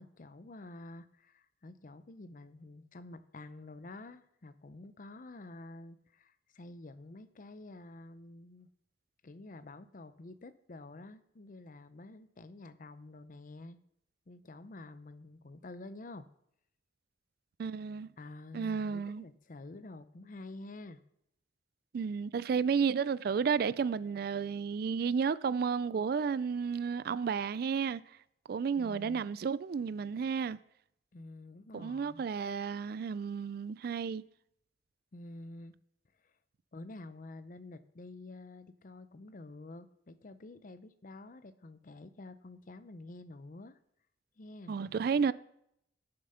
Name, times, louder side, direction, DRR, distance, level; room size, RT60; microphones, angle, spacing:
voice 1, 0.0-8.7 9.2-13.8 14.3-16.3 18.2-21.0 28.8-29.3 31.1-32.2 35.1-35.8 36.2-36.3 36.7-43.8 44.4-44.7, left 2 dB, 45° left, 0.6 m, -49 dB
voice 2, 17.6-18.1 18.5-19.2 21.9-28.0 28.5-30.6 31.7-34.2 44.7-45.3, right 6 dB, 55° right, 0.3 m, -32 dB
11.0 x 6.7 x 5.6 m
head